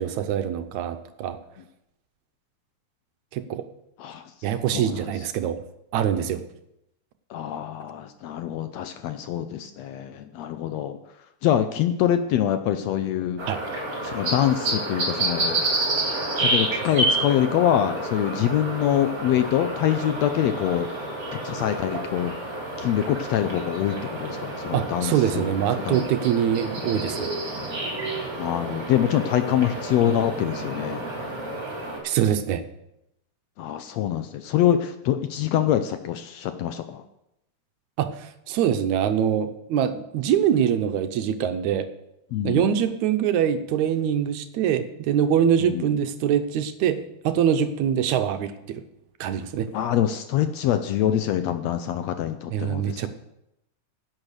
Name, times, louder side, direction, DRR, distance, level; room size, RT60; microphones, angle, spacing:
voice 1, 0.0-1.4 3.3-3.7 4.4-5.6 5.9-6.4 13.5-13.6 24.7-27.3 32.0-32.6 38.0-41.9 42.4-48.8 49.2-49.7 52.5-53.1, right 9 dB, 75° right, 10 dB, 2.0 m, -24 dB
voice 2, 7.3-11.0 11.4-13.4 14.0-15.6 16.4-20.9 21.3-22.3 22.8-25.6 25.9-26.0 28.4-31.0 33.6-37.0 42.3-42.7 45.6-45.9 49.7-53.1, left 10 dB, 75° left, 9 dB, 1.6 m, -25 dB
sound 1, 13.4-32.0, right 2 dB, 35° right, 3.5 m, -29 dB
11.0 x 8.8 x 6.5 m, 0.84 s
omnidirectional pair, 3.5 m